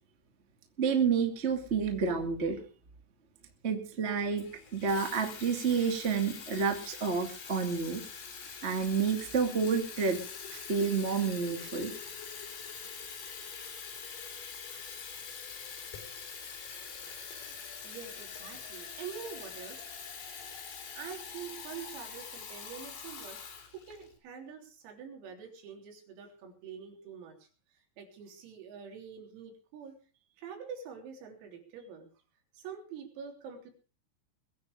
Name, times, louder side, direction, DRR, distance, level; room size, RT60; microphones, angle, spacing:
voice 1, 0.8-2.6 3.6-8.0 8.6-10.2 10.5-11.9, right 5 dB, 35° right, 4 dB, 1.0 m, -29 dB
Water tap faucet / Fill (with liquid), 4.4-24.1, left 6 dB, 55° left, 5.1 m, -44 dB
voice 2, 17.8-19.9 20.9-23.4 23.7-27.5 28.0-30.0 30.4-32.1 32.5-33.7, right 7 dB, 90° right, 3 dB, 6.2 m, -45 dB
22.0 x 9.8 x 4.9 m, 0.38 s
omnidirectional pair, 5.9 m